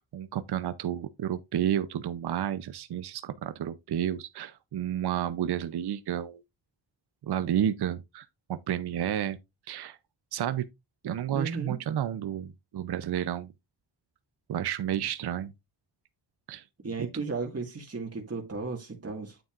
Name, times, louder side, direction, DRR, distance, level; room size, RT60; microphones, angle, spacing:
voice 1, 0.1-6.4 7.2-9.4 9.7-10.0 10.3-10.7 11.0-13.5 14.5-15.5 16.5-16.6, right 10 dB, 55° right, 0.7 m, -31 dB
voice 2, 11.3-11.8 16.8-19.4, right 4 dB, 30° right, 1.9 m, -34 dB
9.0 x 7.1 x 2.5 m
cardioid pair, 60°, 46 cm